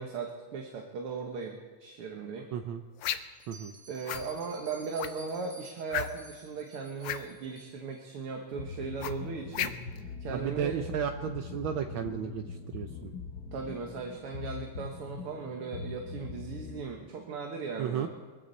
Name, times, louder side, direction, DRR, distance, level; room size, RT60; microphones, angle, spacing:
voice 1, 0.0-2.5 3.9-9.8 10.2-10.7 13.5-18.1, right 5 dB, 90° right, 2 dB, 2.3 m, -38 dB
voice 2, 2.5-2.8 3.5-3.7 10.3-13.1 17.8-18.1, right 8 dB, 70° right, 6 dB, 1.5 m, -33 dB
sound 1, 3.0-3.4 4.1-4.3 5.0-5.3 5.9-6.3 7.0-7.3 9.0-10.0, left 10 dB, 80° left, 1.6 m, -33 dB
Bell, 3.4-8.0, right 1 dB, 55° right, 2.3 m, -52 dB
sound 2, 8.5-16.8, left 5 dB, 55° left, 1.4 m, -42 dB
22.5 x 15.5 x 4.1 m, 1.5 s
omnidirectional pair, 2.4 m